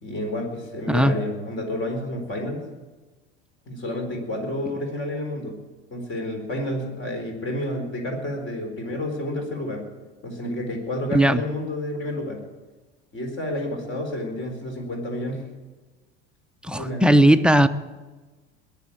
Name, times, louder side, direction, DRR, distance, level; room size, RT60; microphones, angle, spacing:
voice 1, 0.0-2.6 3.7-5.6 5.9-9.8 10.2-12.4 13.1-15.4 16.7-17.0, left 1 dB, 35° left, 3 dB, 4.4 m, -30 dB
voice 2, 16.7-17.7, right 1 dB, 5° right, 9 dB, 0.7 m, -17 dB
21.0 x 6.9 x 8.8 m, 1.3 s
hypercardioid pair, 75°, 33 cm